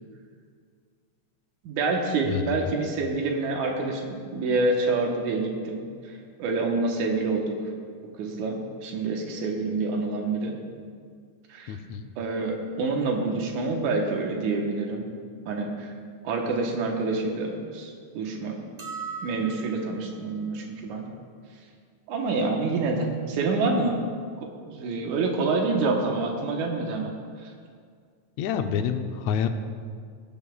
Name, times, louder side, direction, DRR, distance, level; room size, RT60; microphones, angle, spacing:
voice 1, 1.6-5.8 6.4-7.5 8.2-10.5 11.5-11.8 12.2-15.0 15.5-15.9 16.2-18.6 19.2-21.0 22.1-23.9 24.7-27.1 27.4-27.5, right 3 dB, 85° right, 1 dB, 2.5 m, -27 dB
voice 2, 2.2-2.7 11.7-12.1 28.4-29.5, left 7 dB, 75° left, 7 dB, 1.8 m, -28 dB
sound 1, 18.8-20.1, right 5 dB, 45° right, 0.7 m, -38 dB
17.5 x 11.0 x 2.3 m, 2.1 s
omnidirectional pair, 3.4 m